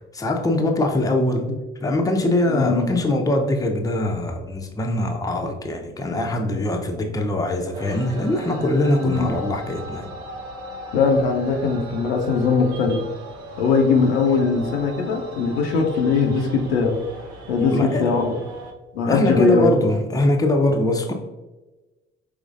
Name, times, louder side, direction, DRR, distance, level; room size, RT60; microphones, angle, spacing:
voice 1, 0.1-1.5 1.8-10.1 17.7-18.2 19.1-21.1, left 1 dB, 10° left, 3 dB, 0.6 m, -22 dB
voice 2, 2.5-2.9 6.1-6.2 9.0-9.4 10.9-13.0 13.6-17.0 17.5-18.3 18.9-19.7 20.6-20.7, left 4 dB, 75° left, 2 dB, 0.6 m, -20 dB
sound 1, 7.7-18.7, right 1 dB, 65° right, 0.7 m, -37 dB
5.0 x 3.2 x 2.4 m, 1.1 s
figure-of-eight pair, 45°, 31 cm